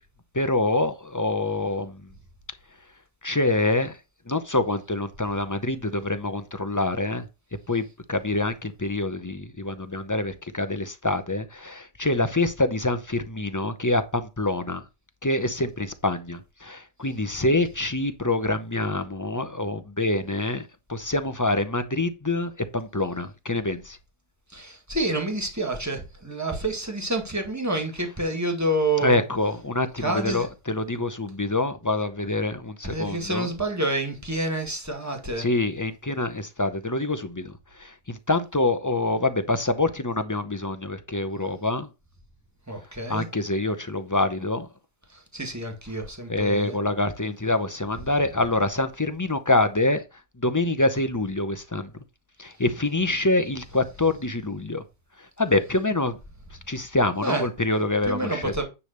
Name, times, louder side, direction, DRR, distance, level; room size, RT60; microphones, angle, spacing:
voice 1, 0.3-2.0 3.2-4.0 4.3-7.2 7.7-14.8 15.2-24.0 29.0-33.5 35.4-37.5 37.8-41.9 43.1-44.7 46.3-50.0 50.4-51.9 52.4-54.8 55.4-56.2 56.7-58.6, left 2 dB, 20° left, 0.6 m, -26 dB
voice 2, 24.5-29.2 30.0-30.5 32.8-35.5 42.7-43.3 45.1-46.8 57.2-57.5 58.0-58.6, right 2 dB, 15° right, 2.0 m, -28 dB
9.7 x 3.4 x 6.6 m
omnidirectional pair, 1.0 m